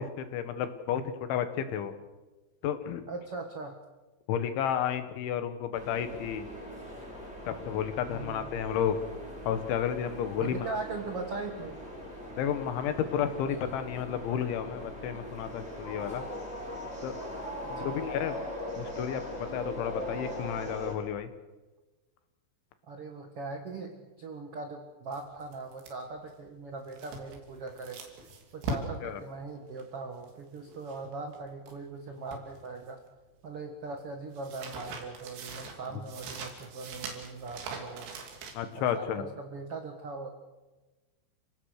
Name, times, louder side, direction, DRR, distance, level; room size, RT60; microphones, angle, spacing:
voice 1, 0.0-1.9 2.6-3.0 4.3-6.5 7.5-9.0 9.5-10.8 12.4-16.2 17.0-17.2 17.7-18.4 18.8-21.3 29.0-29.2 38.6-39.3, left 9 dB, 80° left, 9 dB, 3.8 m, -32 dB
voice 2, 3.1-3.8 8.1-8.5 10.4-11.8 17.7-18.0 22.9-28.0 28.5-33.0 33.4-38.2 38.7-40.3, right 3 dB, 70° right, 4 dB, 1.4 m, -40 dB
sound 1, 5.7-21.0, equal, ahead, 5.8 m, -41 dB
sound 2, 25.1-31.8 32.1-33.2 33.5-38.8, right 3 dB, 85° right, 5.4 m, -42 dB
29.0 x 17.5 x 6.6 m, 1.2 s
omnidirectional pair, 5.4 m